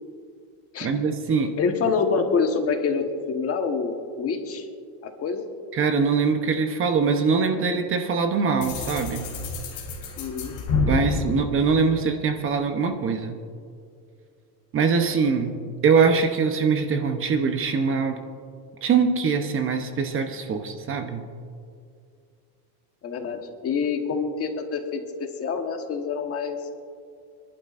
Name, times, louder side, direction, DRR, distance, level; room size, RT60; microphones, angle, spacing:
voice 1, 0.8-1.5 5.7-9.3 10.9-13.4 14.7-18.2 18.8-21.2, right 5 dB, 30° right, 6 dB, 0.8 m, -23 dB
voice 2, 1.6-4.7 5.0-5.4 10.2-10.5 23.0-26.6, left 5 dB, 30° left, 4 dB, 1.3 m, -26 dB
sound 1, 8.6-12.5, left 4 dB, 55° left, 3.3 m, -29 dB
25.0 x 11.5 x 2.5 m, 2.3 s
cardioid pair, 145°, 43 cm